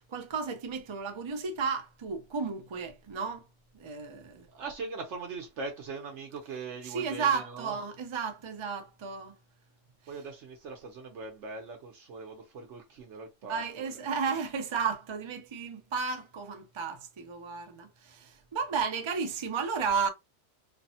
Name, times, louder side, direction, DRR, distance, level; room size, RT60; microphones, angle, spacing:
voice 1, 0.0-3.5 3.7-4.5 6.8-9.4 13.4-20.1, right 5 dB, 50° right, 0.3 m, -33 dB
voice 2, 4.3-7.7 10.1-13.9, right 4 dB, 80° right, 1.0 m, -41 dB
3.2 x 2.0 x 2.7 m
omnidirectional pair, 1.2 m